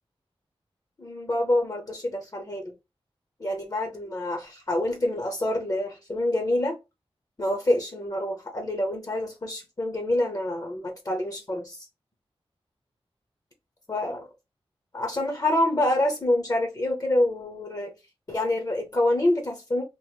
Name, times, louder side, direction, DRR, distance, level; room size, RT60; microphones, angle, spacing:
voice 1, 1.0-2.7 3.4-6.8 7.4-11.8 13.9-14.2 14.9-17.9 18.3-19.8, left 1 dB, 35° left, 0.7 m, -26 dB
3.0 x 2.0 x 3.4 m
wide cardioid pair, 85°, 10 cm